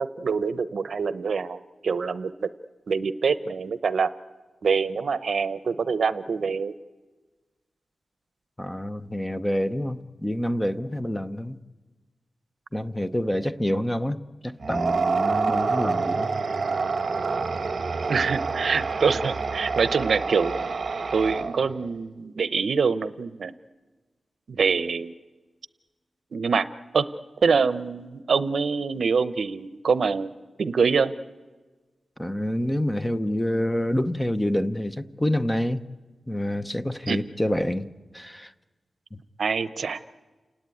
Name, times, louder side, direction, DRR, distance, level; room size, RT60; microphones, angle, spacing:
voice 1, 0.0-2.5 2.9-4.1 4.6-6.7 18.1-20.7 21.1-23.5 24.5-25.1 26.3-26.7 26.9-27.1 27.4-30.3 30.6-31.1 37.1-37.2 39.4-40.0, right 5 dB, 65° right, 14 dB, 0.7 m, -25 dB
voice 2, 8.6-11.6 12.7-16.3 32.2-35.8 36.3-37.9 38.1-38.5 39.1-39.2, left 1 dB, 10° left, 11 dB, 0.7 m, -27 dB
sound 1, 14.6-21.8, right 4 dB, 45° right, 1.2 m, -27 dB
29.0 x 18.5 x 9.3 m, 1.3 s
wide cardioid pair, 170°, 0 cm